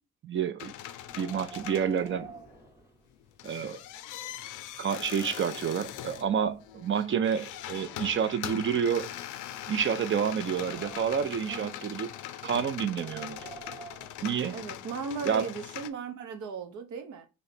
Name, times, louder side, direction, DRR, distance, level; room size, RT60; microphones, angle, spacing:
voice 1, 0.2-0.7 1.2-2.3 3.4-3.8 4.8-9.1 9.7-12.2 12.4-13.5 14.2-14.5 15.3-15.5, right 7 dB, 40° right, 0.5 m, -29 dB
sound 1, 0.6-2.6 3.1-15.9, left 12 dB, 90° left, 0.5 m, -41 dB
Wind, 0.9-3.6 3.9-4.0 4.7-4.8 5.3-6.9 7.7-9.3 9.8-11.5 12.7-14.8, right 5 dB, 10° right, 1.0 m, -50 dB
voice 2, 14.5-17.2, right 6 dB, 75° right, 0.9 m, -37 dB
3.2 x 2.9 x 4.1 m
cardioid pair, 90°, 30 cm